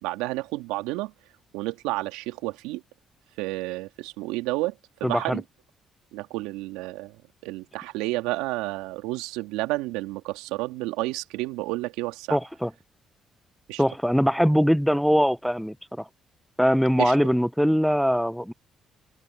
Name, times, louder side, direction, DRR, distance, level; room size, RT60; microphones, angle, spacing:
voice 1, 0.0-1.1 1.5-2.8 3.4-5.4 6.1-7.2 7.4-12.4 13.7-13.8 17.0-17.1, right 20 dB, 80° right, 2.5 m, -30 dB
voice 2, 5.0-5.4 12.3-12.7 13.8-16.0 16.6-18.5, equal, ahead, 0.8 m, -22 dB
open air
hypercardioid pair, 50°, 0 cm